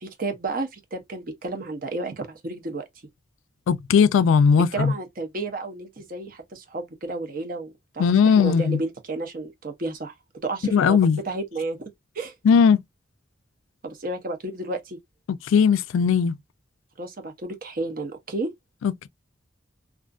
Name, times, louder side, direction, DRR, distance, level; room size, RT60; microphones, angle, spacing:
voice 1, 0.0-2.8 4.7-10.1 10.4-11.8 12.1-12.3 13.8-15.0 17.0-18.5, right 2 dB, 45° right, 0.6 m, -32 dB
voice 2, 3.7-4.9 8.0-8.8 10.7-11.2 12.4-12.8 15.5-16.4 18.8-19.1, left 6 dB, 90° left, 0.3 m, -18 dB
2.5 x 2.4 x 2.3 m
head